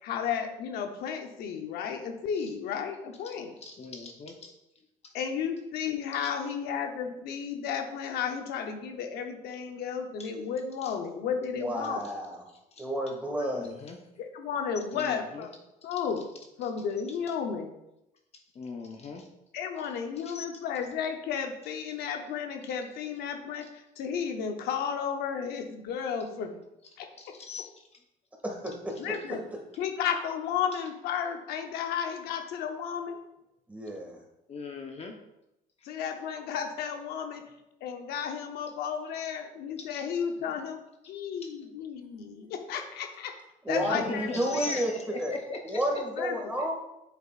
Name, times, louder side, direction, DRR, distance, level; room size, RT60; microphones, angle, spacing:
voice 1, 0.0-3.6 5.1-12.0 13.4-13.5 14.2-15.5 15.8-16.3 16.6-17.7 19.5-26.6 27.0-27.4 29.0-29.4 29.8-33.2 35.8-37.5 37.8-40.8 41.1-43.4 43.7-44.8 46.2-46.5, left 7 dB, 85° left, 5 dB, 0.8 m, -33 dB
voice 2, 3.6-4.5 10.2-10.3 10.8-10.9 12.7-12.8 13.4-14.0 14.9-15.5 18.5-19.3 20.2-20.6 27.2-27.7 34.5-35.1 39.9-40.0 41.4-41.5 43.7-46.0, left 4 dB, 40° left, 3 dB, 0.9 m, -39 dB
voice 3, 11.6-12.4 12.8-13.7 28.4-28.9 33.7-34.2 43.6-44.9 45.2-45.4 45.6-46.7, right 1 dB, 10° right, 0 dB, 2.0 m, -31 dB
8.2 x 7.1 x 2.5 m, 0.88 s
cardioid pair, 105°, 16 cm